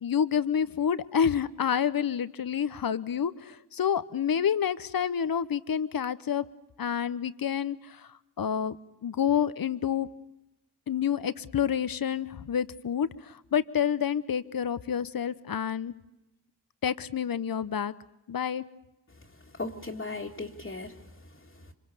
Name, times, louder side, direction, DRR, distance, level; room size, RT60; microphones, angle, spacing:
voice 1, 0.0-6.4 6.8-7.8 8.4-8.8 9.0-10.1 10.9-15.9 16.8-17.9 18.3-18.6, left 8 dB, 45° left, 15 dB, 1.0 m, -28 dB
voice 2, 19.5-21.7, left 3 dB, 25° left, -3 dB, 2.1 m, -38 dB
25.5 x 22.0 x 6.8 m, 0.94 s
supercardioid pair, 40°, 47 cm